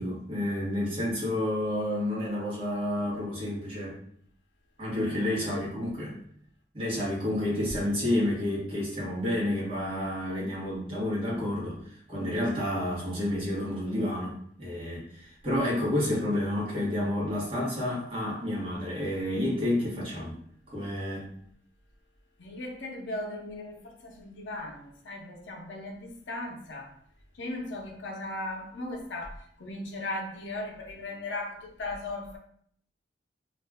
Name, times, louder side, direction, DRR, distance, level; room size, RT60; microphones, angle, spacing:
voice 1, 0.0-3.9 4.8-6.2 6.7-11.8 12.1-20.4 20.7-21.3, left 1 dB, 30° right, -6 dB, 0.9 m, -30 dB
voice 2, 22.4-26.9 27.3-32.4, left 2 dB, 85° left, 1 dB, 0.6 m, -37 dB
2.4 x 2.1 x 3.4 m, 0.64 s
head